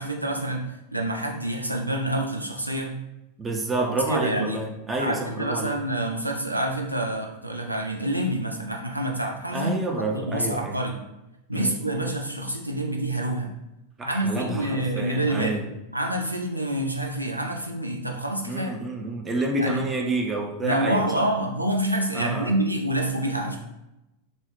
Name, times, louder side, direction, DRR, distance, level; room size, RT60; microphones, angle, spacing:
voice 1, 0.0-2.9 3.8-4.6 5.0-9.7 10.1-11.0 11.5-13.5 14.0-15.6 15.9-18.7 19.6-19.8 20.6-23.6, right 1 dB, 90° right, 1 dB, 0.4 m, -27 dB
voice 2, 3.4-5.8 9.5-10.8 11.5-12.0 14.0-15.7 18.5-21.2 22.1-22.5, right 2 dB, 15° right, 2 dB, 0.4 m, -29 dB
3.0 x 2.0 x 2.9 m, 0.93 s
figure-of-eight pair, 90°, 0 cm